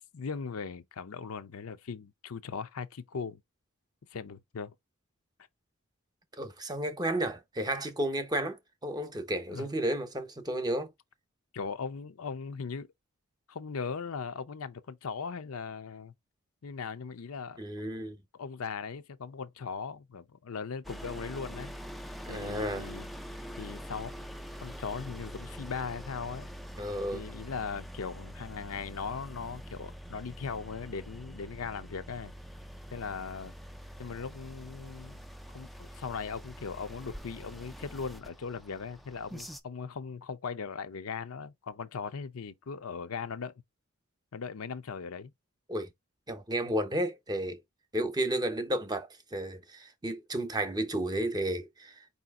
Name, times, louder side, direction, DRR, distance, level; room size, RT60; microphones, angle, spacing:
voice 1, 0.1-3.4 4.1-4.7 9.5-9.7 11.5-12.9 13.5-16.1 16.6-17.6 18.3-21.7 22.3-23.1 23.6-24.1 24.6-26.5 27.1-32.3 32.9-33.5 34.0-35.2 35.5-43.6 44.3-45.3, left 5 dB, 75° left, 0.6 m, -39 dB
voice 2, 6.4-10.9 17.6-18.2 22.2-22.9 26.8-27.2 45.7-45.9 46.3-47.6 47.9-51.9, right 1 dB, 20° right, 0.8 m, -32 dB
sound 1, 20.8-39.6, equal, ahead, 0.4 m, -45 dB
4.9 x 2.7 x 3.6 m
head